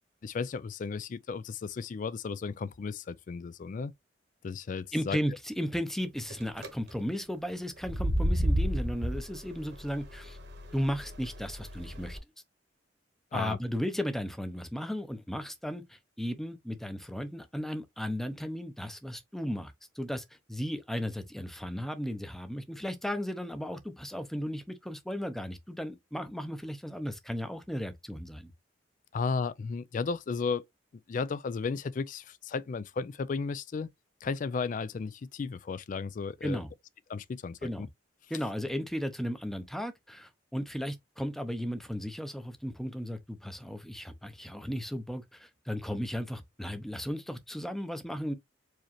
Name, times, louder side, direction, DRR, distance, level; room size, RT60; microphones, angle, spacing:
voice 1, 0.2-3.9 4.4-5.2 13.3-13.6 29.1-30.6 31.1-33.9 34.2-36.6 37.1-37.9, left 5 dB, 45° left, 0.3 m, -34 dB
voice 2, 4.9-10.4 10.7-12.2 13.3-28.5 36.4-36.7 37.6-37.9 38.3-48.3, equal, ahead, 0.6 m, -35 dB
sound 1, 6.3-6.7 7.8-12.2, equal, 60° right, 1.1 m, -32 dB
4.8 x 3.0 x 2.9 m
head